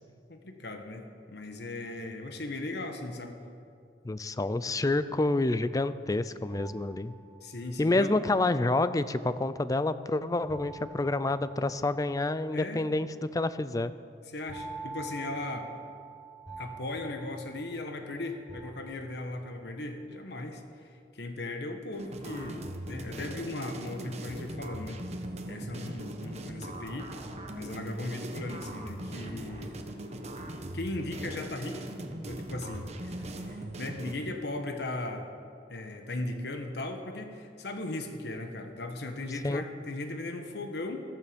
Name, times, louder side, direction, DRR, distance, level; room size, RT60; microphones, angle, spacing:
voice 1, 0.3-3.4 7.4-8.1 12.5-12.8 14.3-15.7 16.6-25.0 25.5-27.1 27.5-29.8 30.7-31.8 32.3-35.3 35.7-41.0, left 2 dB, 65° left, 5 dB, 1.2 m, -37 dB
voice 2, 4.0-7.1 7.8-13.1 13.3-13.9 39.4-39.6, left 2 dB, 20° left, 14 dB, 0.4 m, -28 dB
sound 1, 6.5-7.7 10.5-12.1 14.5-18.1 18.5-19.4, right 3 dB, ahead, 4.4 m, -45 dB
sound 2, 21.9-34.1, right 1 dB, 40° right, 1.1 m, -40 dB
14.5 x 14.0 x 5.2 m, 2.3 s
head